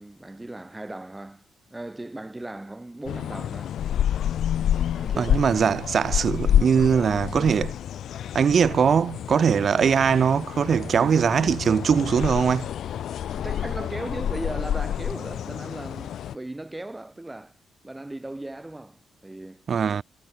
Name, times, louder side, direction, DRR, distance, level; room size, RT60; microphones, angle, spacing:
voice 1, 0.0-3.7 4.9-5.4 13.3-17.5 17.8-19.6, right 2 dB, 15° right, 6.8 m, -37 dB
sound 1, 3.1-16.4, left 10 dB, 75° left, 2.6 m, -28 dB
voice 2, 5.2-7.8 8.3-12.7 19.7-20.0, right 7 dB, 55° right, 2.0 m, -21 dB
cardioid pair, 95°, 0 cm